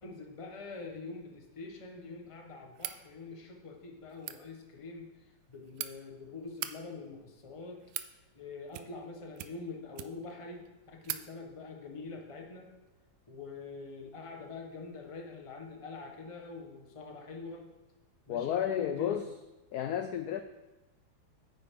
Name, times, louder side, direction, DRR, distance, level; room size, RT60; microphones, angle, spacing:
voice 1, 0.0-5.1 5.5-7.8 8.3-12.7 13.3-17.7 18.3-19.2, left 4 dB, 20° left, 2 dB, 1.0 m, -45 dB
sound 1, 2.7-3.0 4.1-4.4 5.4-5.9 6.5-6.7 7.5-8.1 8.7-9.1 9.4-10.3 10.7-10.8 11.0-11.2, right 13 dB, 85° right, 1.4 m, -40 dB
voice 2, 18.3-19.3 19.7-20.4, left 10 dB, 80° left, 8 dB, 0.8 m, -32 dB
9.3 x 8.8 x 3.7 m, 1.1 s
omnidirectional pair, 2.1 m